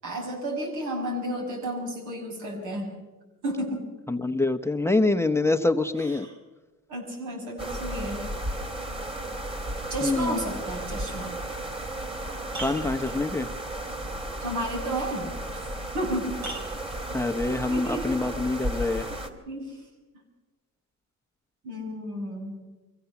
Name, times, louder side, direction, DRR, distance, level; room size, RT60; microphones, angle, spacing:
voice 1, 0.0-2.9 3.4-3.9 5.8-6.4 6.9-8.3 9.9-11.3 14.4-15.6 15.9-16.4 17.7-18.3 19.5-19.9 21.6-22.6, right 1 dB, 80° right, 2 dB, 6.7 m, -32 dB
voice 2, 4.1-6.3 10.0-10.4 12.6-13.5 17.1-19.1, left 2 dB, 10° left, 6 dB, 0.9 m, -25 dB
sound 1, 7.6-19.3, right 1 dB, 20° right, 2.6 m, -34 dB
sound 2, 12.1-13.5 15.5-15.6 16.4-17.7 19.0-19.1, right 2 dB, 65° right, 5.8 m, -40 dB
23.5 x 16.0 x 7.1 m, 1.2 s
cardioid pair, 90°, 30 cm